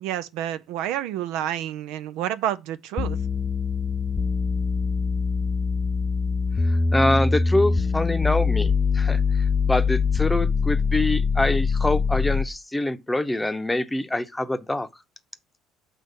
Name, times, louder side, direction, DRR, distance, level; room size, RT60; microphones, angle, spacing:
voice 1, 0.0-3.2, right 11 dB, 70° right, 0.4 m, -29 dB
sound 1, 3.0-12.6, left 5 dB, 30° left, 0.4 m, -23 dB
voice 2, 6.6-9.2 9.7-14.9, left 2 dB, 10° left, 0.8 m, -25 dB
6.6 x 3.1 x 5.6 m
hypercardioid pair, 60°, 0 cm